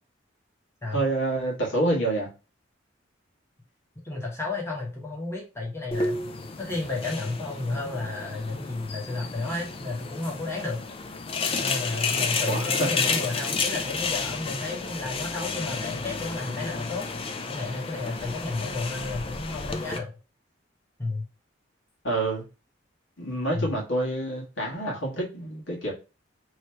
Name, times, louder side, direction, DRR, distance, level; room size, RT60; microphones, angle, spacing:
voice 1, 0.9-2.3 12.5-12.9 22.0-22.4 23.2-25.9, right 2 dB, 85° left, 1.6 m, -27 dB
voice 2, 4.0-6.2 6.6-10.8 11.6-17.0 17.5-20.1 21.0-21.2 23.5-23.7, left 3 dB, 15° left, 1.0 m, -32 dB
sound 1, 5.9-20.0, left 4 dB, 30° left, 0.4 m, -31 dB
3.1 x 2.9 x 4.4 m
head